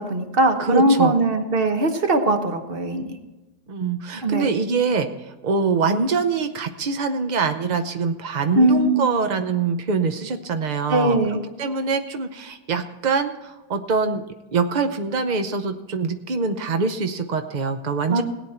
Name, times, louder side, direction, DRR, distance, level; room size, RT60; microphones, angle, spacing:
voice 1, 0.0-3.2 4.2-4.5 8.5-8.9 10.9-11.4 18.1-18.2, right 1 dB, 40° right, 7 dB, 1.1 m, -20 dB
voice 2, 0.6-1.1 3.7-5.1 5.4-11.2 11.6-14.2 14.5-18.2, right 4 dB, 80° right, 8 dB, 0.4 m, -24 dB
17.0 x 9.4 x 4.4 m, 1.1 s
omnidirectional pair, 1.9 m